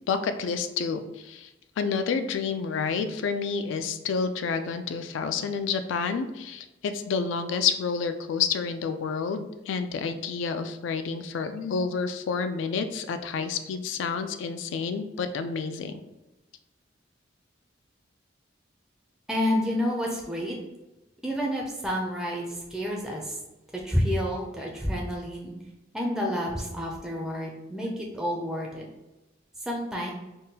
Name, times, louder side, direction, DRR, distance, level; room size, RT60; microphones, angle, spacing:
voice 1, 0.1-1.5 1.8-16.0, left 5 dB, 75° left, 9 dB, 0.3 m, -29 dB
voice 2, 19.3-20.6 21.2-23.4 23.7-25.5 25.9-28.9 29.6-30.1, equal, 5° right, -2 dB, 0.4 m, -29 dB
3.6 x 2.2 x 2.7 m, 1.0 s
head